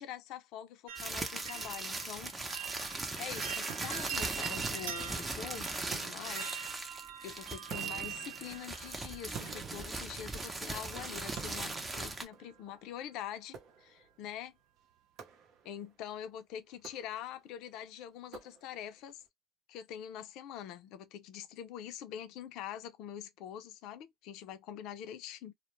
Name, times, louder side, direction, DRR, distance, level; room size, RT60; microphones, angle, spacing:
voice 1, 0.0-2.3 3.2-6.6 7.2-14.5 15.6-19.2 19.7-25.5, left 10 dB, 70° left, 0.5 m, -44 dB
sound 1, 0.9-9.8 10.7-11.3 11.5-12.1 12.4-12.5, right 9 dB, 85° right, 0.4 m, -44 dB
sound 2, 1.0-12.2, right 2 dB, 20° right, 0.7 m, -39 dB
sound 3, 3.7-5.5 5.9-7.1 7.7-10.7 11.4-12.8 13.5-14.2 15.2-15.9 16.7-17.5 18.3-19.0, right 7 dB, 60° right, 0.7 m, -50 dB
2.2 x 2.1 x 3.0 m
supercardioid pair, 110°, 0 cm